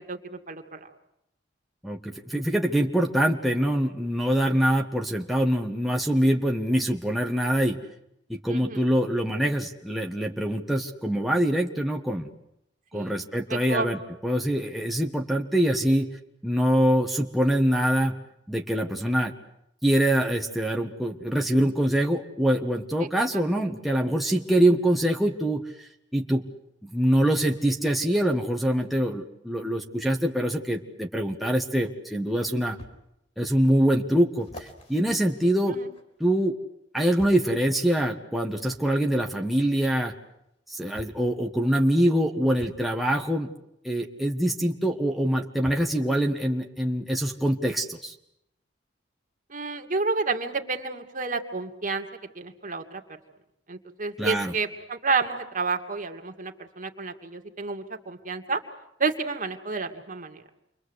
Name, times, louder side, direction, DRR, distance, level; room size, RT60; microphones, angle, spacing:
voice 1, 0.1-0.9 8.5-8.8 12.9-13.2 13.5-13.9 23.3-23.4 35.7-35.8 49.5-52.1 52.4-53.0 53.7-58.6 59.0-60.4, right 4 dB, 45° right, 4 dB, 2.5 m, -30 dB
voice 2, 1.8-7.8 8.3-12.3 12.9-16.2 16.4-18.2 18.5-19.3 19.8-26.4 26.8-32.8 33.4-35.8 36.2-36.5 36.9-40.1 40.7-43.5 43.8-48.1 54.2-54.5, right 1 dB, ahead, 1 dB, 1.5 m, -24 dB
sound 1, 32.8-33.0 33.6-33.7 34.4-36.3 37.2-37.5 38.7-38.9 40.1-40.2 40.9-41.3 42.6-42.8 44.5-44.6 45.6-46.0 46.8-46.9, equal, 35° left, 4.4 m, -46 dB
29.0 x 23.5 x 8.2 m, 0.81 s
head